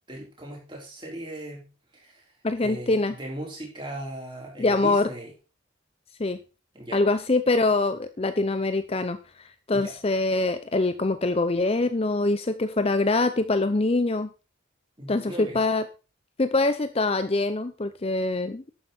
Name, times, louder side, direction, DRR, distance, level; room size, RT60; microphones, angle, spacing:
voice 1, 0.1-2.3 2.6-5.3 6.7-7.0 9.7-9.9 15.0-15.6, right 1 dB, 25° right, -2 dB, 5.0 m, -38 dB
voice 2, 2.4-3.1 4.6-5.1 6.2-6.4 6.9-9.2 9.7-14.3 15.1-15.8 16.4-18.6, left 2 dB, 30° left, 11 dB, 0.6 m, -24 dB
11.5 x 8.9 x 4.3 m, 0.32 s
head